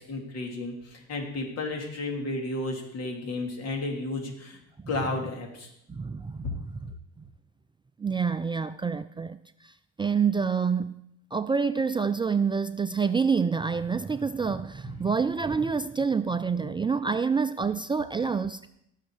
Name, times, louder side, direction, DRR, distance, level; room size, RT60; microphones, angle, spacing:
voice 1, 0.0-4.6 4.9-5.7 16.6-16.7, left 2 dB, 55° left, 2 dB, 3.2 m, -33 dB
voice 2, 5.9-6.5 8.0-9.4 9.6-9.7 10.0-10.9 11.3-18.7, right 5 dB, 15° right, 10 dB, 0.4 m, -27 dB
18.0 x 6.5 x 5.0 m, 0.77 s
supercardioid pair, 90°, 30 cm